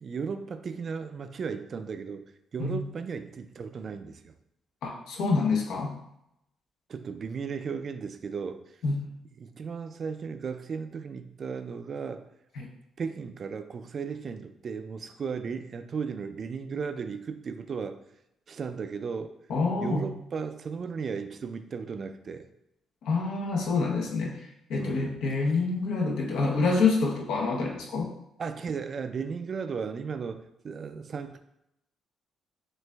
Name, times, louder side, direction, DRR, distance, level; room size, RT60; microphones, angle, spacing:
voice 1, 0.0-2.2 2.5-4.3 6.9-8.6 9.4-12.3 13.0-18.0 18.5-19.3 19.8-22.5 24.8-25.2 28.4-31.4, right 5 dB, 50° right, 9 dB, 0.3 m, -35 dB
voice 2, 4.8-5.9 8.8-9.0 12.6-12.7 19.5-20.1 23.0-24.4 24.7-28.1, left 4 dB, 85° left, 0 dB, 0.7 m, -27 dB
6.2 x 2.5 x 2.2 m, 0.82 s
cardioid pair, 90°, 0 cm